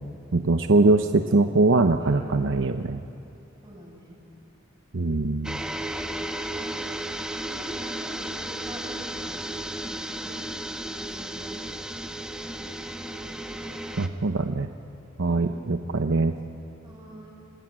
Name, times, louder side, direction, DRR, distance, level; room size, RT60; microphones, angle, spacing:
voice 1, 0.3-3.0 4.9-5.6 14.0-14.7 15.2-16.4, right 3 dB, 65° right, 7 dB, 0.8 m, -22 dB
voice 2, 1.9-2.5 3.6-4.2 6.0-6.8 7.4-10.5 10.8-12.6 13.2-13.8 15.2-15.6 16.8-17.3, equal, 20° right, -3 dB, 7.6 m, -46 dB
sound 1, 5.4-14.1, right 1 dB, 5° right, 1.1 m, -34 dB
28.0 x 18.5 x 8.9 m, 2.7 s
head